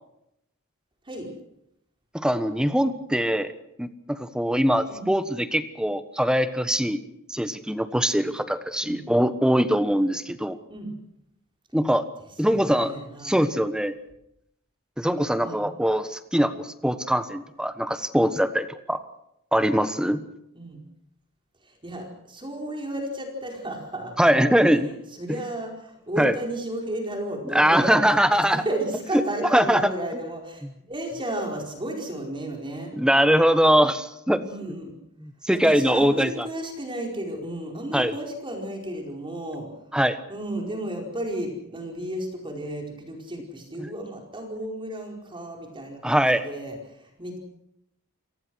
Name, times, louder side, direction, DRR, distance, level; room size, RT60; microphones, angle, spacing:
voice 1, 2.1-3.5 3.8-7.0 7.3-10.6 11.7-12.0 12.4-13.0 13.2-13.9 15.0-19.0 19.5-20.2 24.2-24.9 26.2-26.3 27.5-28.6 29.5-29.8 32.9-34.4 35.2-36.5 37.9-38.1 39.9-40.2 43.8-43.9 46.0-46.4, equal, 5° right, 10 dB, 1.2 m, -22 dB
voice 2, 12.4-13.5 15.4-15.7 20.5-20.8 21.6-24.1 25.1-27.9 28.3-32.9 34.3-34.9 35.5-39.7 40.3-47.4, right 1 dB, 25° right, 1 dB, 4.8 m, -33 dB
28.5 x 18.5 x 6.3 m, 0.81 s
head